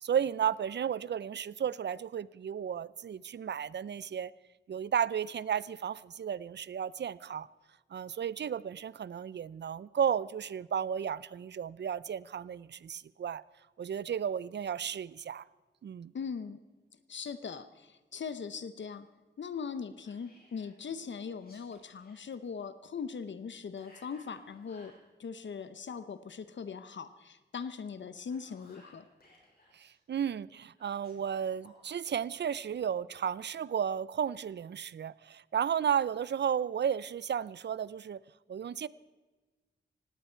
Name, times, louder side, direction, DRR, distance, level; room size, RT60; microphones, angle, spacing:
voice 1, 0.0-4.3 4.7-7.5 7.9-13.4 13.8-15.4 15.8-16.1 29.7-38.2 38.5-38.9, right 8 dB, 65° right, 20 dB, 0.5 m, -33 dB
voice 2, 16.1-16.6 17.1-19.1 19.4-24.9 25.2-29.1, left 6 dB, 70° left, 12 dB, 0.8 m, -40 dB
Whispering, 20.0-20.7 21.3-22.2 23.8-25.0 28.1-29.9 30.8-32.0, left 1 dB, 50° left, 5.0 m, -61 dB
18.5 x 17.0 x 4.5 m, 1.3 s
wide cardioid pair, 145°, 19 cm